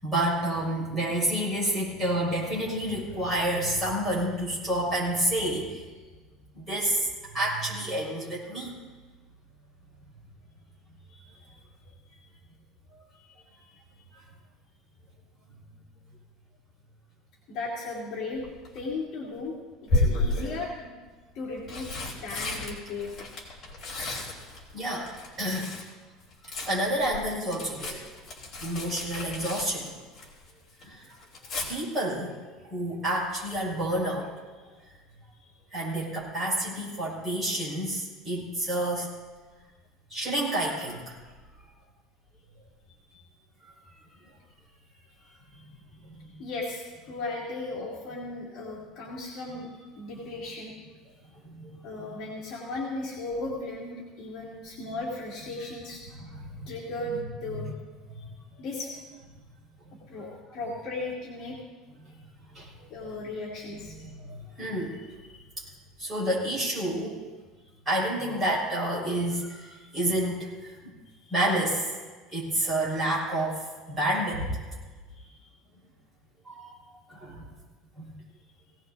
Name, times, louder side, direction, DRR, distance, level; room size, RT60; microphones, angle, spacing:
voice 1, 0.0-5.8 6.5-8.7 24.7-25.1 25.4-25.7 26.4-28.0 28.6-30.0 30.8-31.1 31.7-32.3 32.6-34.3 35.7-39.1 40.1-41.2 49.5-49.6 50.8-50.9 51.4-51.7 54.8-55.0 55.4-55.5 56.1-56.7 57.0-57.1 57.4-57.7 59.1-59.2 60.1-60.4 62.5-62.9 63.7-65.0 66.0-67.2 67.9-70.8 71.3-71.9 72.3-74.6 76.4-76.8 77.1-77.4 78.0-78.1, right 1 dB, 15° right, -6 dB, 5.5 m, -29 dB
voice 2, 11.1-11.5 12.1-12.2 13.1-13.8 17.5-18.5 18.7-20.9 21.3-21.9 22.2-23.1 34.6-34.8 43.1-43.2 45.3-45.6 46.4-50.7 51.8-56.0 56.7-57.7 58.1-58.3 58.6-58.9 60.1-61.6 62.9-64.0 71.0-71.3 75.1-75.5, left 2 dB, 40° left, -5 dB, 2.7 m, -36 dB
Tearing, 18.4-18.8 19.9-20.6 21.4-25.9 26.2-30.5 30.8-31.7 33.5-33.8 34.1-34.2, left 2 dB, 20° left, 3.3 m, -32 dB
20.5 x 17.0 x 2.7 m, 1.3 s
cardioid pair, 180°, 0 cm